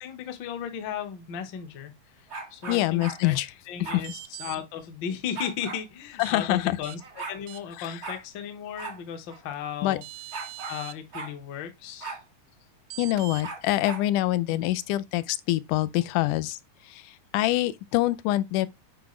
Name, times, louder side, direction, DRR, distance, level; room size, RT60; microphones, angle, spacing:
voice 1, 0.0-3.4 3.7-10.0 10.7-12.2 14.5-14.7, left 8 dB, 60° left, 1.2 m, -36 dB
sound 1, 2.3-3.2 3.8-4.0 5.3-5.8 6.7-6.8 7.0-7.4 8.0-8.2 8.8-9.0 9.3-9.4 10.3-10.8 11.1-11.3 12.0-12.2 13.4-14.1, right 4 dB, 45° right, 0.8 m, -37 dB
voice 2, 2.7-3.5 6.2-6.8 7.8-8.0 9.8-10.0 13.0-16.6 16.9-18.7, left 16 dB, 85° left, 2.1 m, -25 dB
sound 2, 4.0-4.6 6.2-6.3 6.8-7.0 7.5-7.9 9.5-9.6 10.0-10.9 12.9-13.4, right 16 dB, 80° right, 1.6 m, -41 dB
8.1 x 4.8 x 3.1 m
omnidirectional pair, 3.6 m